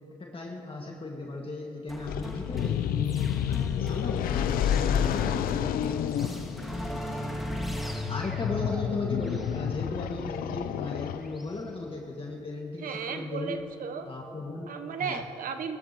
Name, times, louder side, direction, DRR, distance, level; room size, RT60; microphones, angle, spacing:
voice 1, 0.1-6.6 8.0-13.6 14.0-14.7 15.0-15.2, left 2 dB, 40° left, -1 dB, 1.8 m, -36 dB
sound 1, 1.9-11.6, equal, ahead, 1.7 m, -39 dB
sound 2, 2.1-11.6, left 10 dB, 80° left, 0.4 m, -30 dB
voice 2, 12.8-14.1 14.7-15.8, right 6 dB, 70° right, 7 dB, 0.8 m, -35 dB
19.0 x 12.5 x 2.9 m, 2.6 s
supercardioid pair, 45°, 15 cm